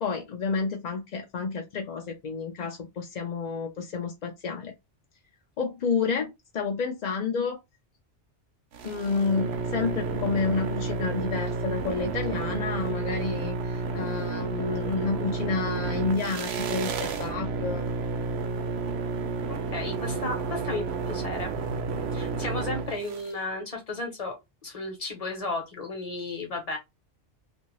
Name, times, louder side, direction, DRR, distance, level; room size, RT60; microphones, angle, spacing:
voice 1, 0.0-4.7 5.6-7.6 8.8-17.8, left 5 dB, 55° left, 0.5 m, -30 dB
sound 1, 8.7-23.3, right 4 dB, 70° right, 0.8 m, -31 dB
voice 2, 19.5-21.5 22.1-26.8, left 2 dB, 35° left, 0.9 m, -34 dB
2.7 x 2.6 x 3.0 m
omnidirectional pair, 1.2 m